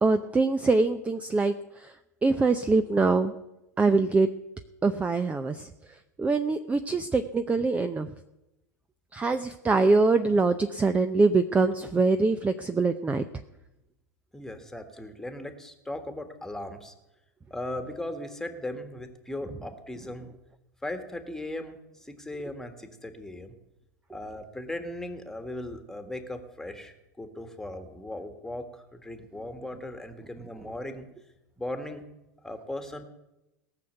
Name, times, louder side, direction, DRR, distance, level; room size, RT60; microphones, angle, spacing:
voice 1, 0.0-1.9 2.2-3.4 3.8-4.3 4.8-5.7 6.2-8.1 9.1-13.2, right 3 dB, 15° right, 10 dB, 0.6 m, -24 dB
voice 2, 14.3-16.9 17.5-20.3 20.8-23.5 24.1-31.1 31.6-32.1 32.4-33.0, left 1 dB, 5° left, 7 dB, 1.7 m, -38 dB
18.0 x 6.5 x 8.0 m, 0.94 s
hypercardioid pair, 95°, 10 cm